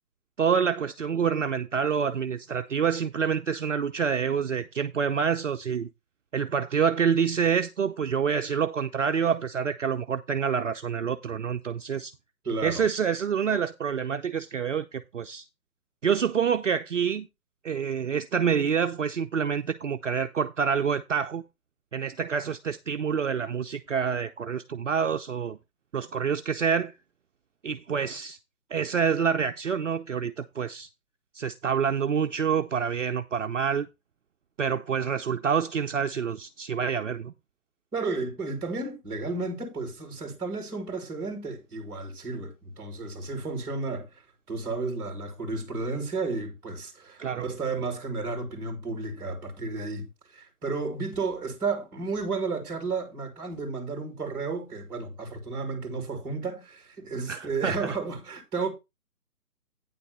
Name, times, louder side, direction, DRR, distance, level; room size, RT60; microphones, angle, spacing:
voice 1, 0.4-5.9 6.3-12.1 12.6-15.4 16.0-17.3 17.6-21.4 21.9-25.6 25.9-26.9 27.6-28.4 28.7-30.9 31.3-33.9 34.6-37.3 47.2-47.5 57.3-57.9, right 7 dB, 55° right, 0.6 m, -27 dB
voice 2, 12.4-12.9 37.9-44.1 44.5-58.7, right 3 dB, 10° right, 2.4 m, -32 dB
9.5 x 4.2 x 6.7 m
figure-of-eight pair, 155°, 46 cm